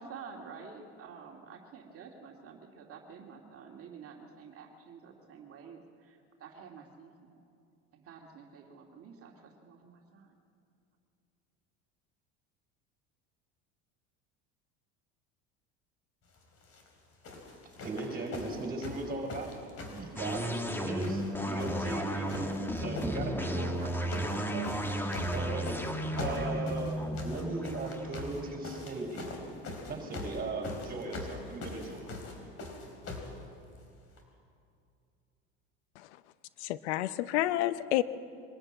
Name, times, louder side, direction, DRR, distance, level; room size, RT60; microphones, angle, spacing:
voice 1, 0.0-7.4 7.9-10.3, right 5 dB, 45° right, 1 dB, 2.3 m, -49 dB
sound 1, 16.6-16.9 17.2-20.7 21.0-22.0 22.3-23.1 23.8-24.4 24.6-33.3 34.2-34.3, left 3 dB, 45° left, 4.0 m, -42 dB
voice 2, 17.8-19.5 19.8-25.8 26.1-29.4 29.9-32.0, right 3 dB, 25° right, 3 dB, 4.9 m, -38 dB
sound 2, 20.2-29.6, equal, 5° left, 1.5 m, -34 dB
voice 3, 36.6-38.0, left 15 dB, 85° left, 15 dB, 0.7 m, -29 dB
23.5 x 13.5 x 8.8 m, 2.5 s
supercardioid pair, 105°, 33 cm